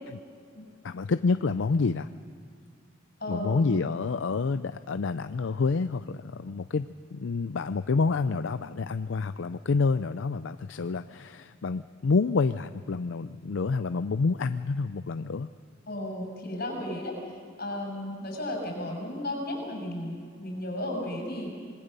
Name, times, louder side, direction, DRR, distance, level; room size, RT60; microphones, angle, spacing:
voice 1, 0.8-2.1 3.3-6.9 7.1-15.5, left 4 dB, 80° left, 11 dB, 0.5 m, -28 dB
voice 2, 3.2-3.8 15.9-17.2 17.6-21.5, left 1 dB, 55° left, 2 dB, 6.7 m, -34 dB
26.0 x 20.5 x 6.7 m, 2.2 s
head